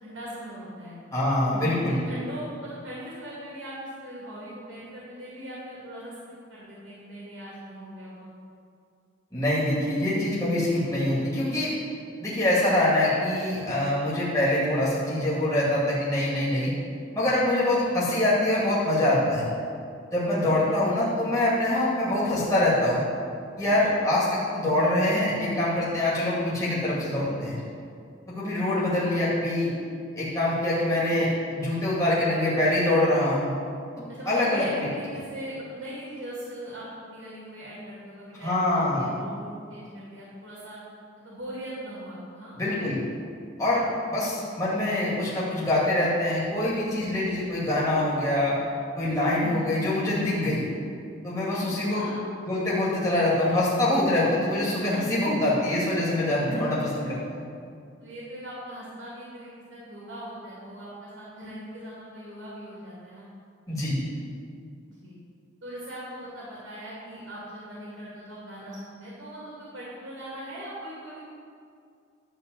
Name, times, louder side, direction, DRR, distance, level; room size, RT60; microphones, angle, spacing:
voice 1, 0.0-1.0 1.5-6.2 6.5-8.3 17.7-18.1 20.6-20.9 23.6-24.0 28.9-29.1 30.9-31.1 34.1-40.8 41.2-42.6 44.1-44.3 51.9-52.3 54.9-55.3 56.8-57.2 58.0-63.3 64.9-65.2 65.6-71.2, right 1 dB, 80° right, -7 dB, 2.7 m, -40 dB
voice 2, 1.1-2.0 9.3-11.7 12.2-16.7 17.1-19.5 20.1-23.0 23.6-27.6 28.3-29.7 30.2-33.5 34.3-34.6 38.4-39.1 42.6-43.0 43.6-48.6 49.0-50.7 51.2-52.1 52.4-57.5 63.7-64.0, left 1 dB, 15° left, -9 dB, 2.5 m, -24 dB
12.0 x 4.2 x 7.9 m, 2.3 s
head